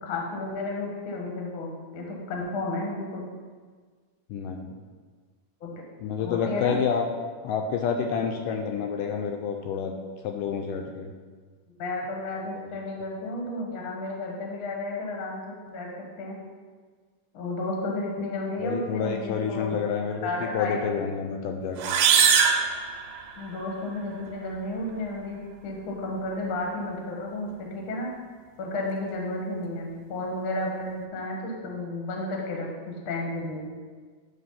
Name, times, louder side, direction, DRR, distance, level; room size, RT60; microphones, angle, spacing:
voice 1, 0.0-3.3 5.6-5.7 6.2-6.8 11.8-16.4 17.3-19.8 20.2-21.1 23.4-28.1 28.6-33.7, left 2 dB, 55° left, -1 dB, 1.5 m, -32 dB
voice 2, 4.3-4.7 6.0-7.0 7.4-9.9 10.2-11.1 18.6-22.0, left 6 dB, 80° left, 3 dB, 2.1 m, -29 dB
sound 1, 21.8-23.6, right 7 dB, 90° right, 2.4 m, -22 dB
9.3 x 3.4 x 5.6 m, 1.5 s
omnidirectional pair, 4.0 m